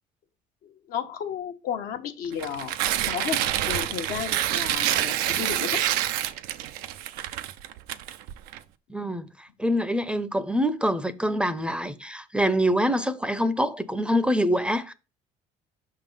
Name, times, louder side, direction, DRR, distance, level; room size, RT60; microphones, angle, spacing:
voice 1, 0.6-2.7 3.1-3.4 3.7-5.8, left 8 dB, 75° left, 1.1 m, -33 dB
Tearing, 2.3-8.6, right 12 dB, 85° right, 0.5 m, -27 dB
voice 2, 8.9-14.9, equal, 5° right, 0.6 m, -25 dB
5.7 x 3.8 x 5.3 m
supercardioid pair, 85°, 15 cm